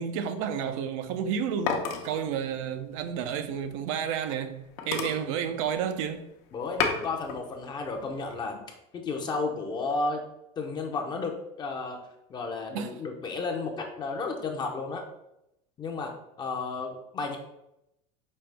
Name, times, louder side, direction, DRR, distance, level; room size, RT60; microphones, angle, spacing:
voice 1, 0.0-6.3 12.7-13.0, right 8 dB, 75° right, 0.5 m, -31 dB
sound 1, 1.1-4.1 4.5-4.6 4.8-6.2 6.5-7.4 7.9-8.4, left 5 dB, 70° left, 0.8 m, -33 dB
voice 2, 6.5-8.6 8.9-10.2 10.6-12.0 12.3-15.0 15.8-16.1 16.4-17.4, left 3 dB, 25° left, 0.5 m, -32 dB
5.3 x 2.9 x 3.3 m
supercardioid pair, 140°, 16 cm